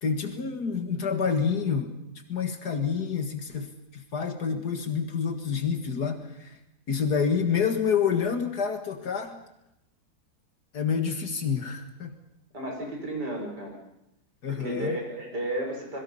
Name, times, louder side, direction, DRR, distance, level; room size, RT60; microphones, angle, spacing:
voice 1, 0.0-1.9 2.3-6.6 6.9-9.4 10.7-12.2 14.4-15.0, left 6 dB, 70° left, 6 dB, 2.3 m, -28 dB
voice 2, 12.5-13.8 14.5-16.0, right 1 dB, 80° right, 1 dB, 6.5 m, -33 dB
26.5 x 22.0 x 5.6 m, 0.84 s
omnidirectional pair, 1.7 m